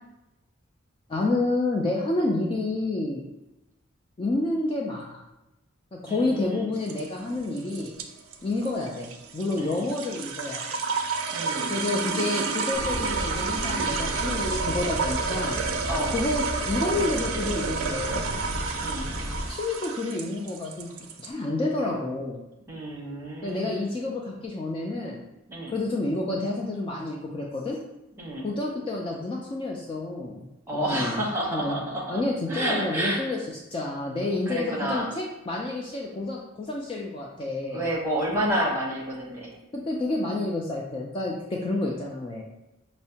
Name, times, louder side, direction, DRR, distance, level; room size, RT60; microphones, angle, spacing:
voice 1, 1.1-3.2 4.2-5.2 6.0-7.9 8.4-10.8 11.5-15.6 16.1-18.3 19.5-22.4 23.4-25.2 25.7-27.8 28.4-30.5 30.7-31.2 31.5-31.8 32.1-33.4 33.7-37.8 39.9-42.4, left 2 dB, 25° left, -2 dB, 0.3 m, -29 dB
voice 2, 6.1-6.7 9.5-9.9 11.3-11.7 15.9-16.2 18.7-19.1 22.7-23.8 25.5-25.7 28.2-28.5 30.7-32.2 32.5-33.2 34.5-35.1 37.7-39.5, right 1 dB, 10° right, -4 dB, 0.9 m, -30 dB
sound 1, 6.7-21.3, right 5 dB, 75° right, 0.4 m, -30 dB
sound 2, 12.7-19.5, left 1 dB, 40° left, 0.8 m, -34 dB
5.4 x 2.1 x 2.7 m, 0.94 s
head